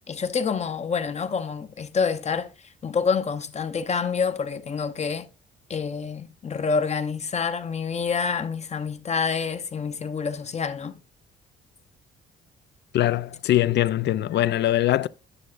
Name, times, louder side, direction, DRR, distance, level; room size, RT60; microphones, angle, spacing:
voice 1, 0.1-5.3 5.7-11.0, left 5 dB, 35° left, 0.8 m, -27 dB
voice 2, 12.9-15.1, left 13 dB, 60° left, 0.4 m, -22 dB
9.8 x 6.4 x 2.5 m
cardioid pair, 90°, 20 cm